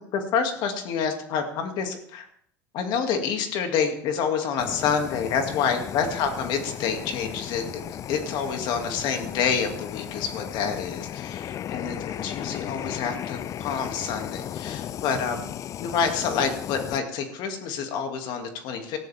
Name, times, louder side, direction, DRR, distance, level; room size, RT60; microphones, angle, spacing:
voice 1, 0.1-2.3 2.7-7.8 8.1-15.5 15.8-19.0, left 6 dB, 60° left, 5 dB, 2.5 m, -28 dB
Fire, 4.6-17.0, left 10 dB, 40° left, 0.4 m, -35 dB
18.0 x 13.5 x 3.6 m, 0.66 s
supercardioid pair, 115°, 9 cm